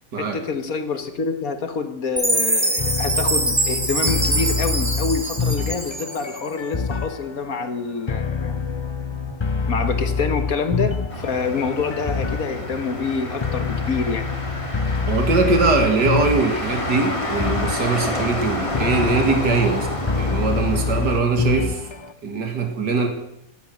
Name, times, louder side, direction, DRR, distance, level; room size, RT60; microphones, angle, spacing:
voice 1, 0.2-8.6 9.7-14.3, left 5 dB, 60° left, 8 dB, 1.8 m, -27 dB
Chime, 2.2-6.4, right 2 dB, 20° right, 2.0 m, -23 dB
sound 1, 2.8-22.1, left 5 dB, 40° left, 0.4 m, -27 dB
Motor vehicle (road), 11.1-21.2, left 1 dB, 20° left, 1.9 m, -29 dB
voice 2, 15.1-19.9 20.2-21.8 22.2-23.1, right 3 dB, 80° right, 4 dB, 2.8 m, -21 dB
17.5 x 12.5 x 6.4 m, 0.82 s
omnidirectional pair, 1.8 m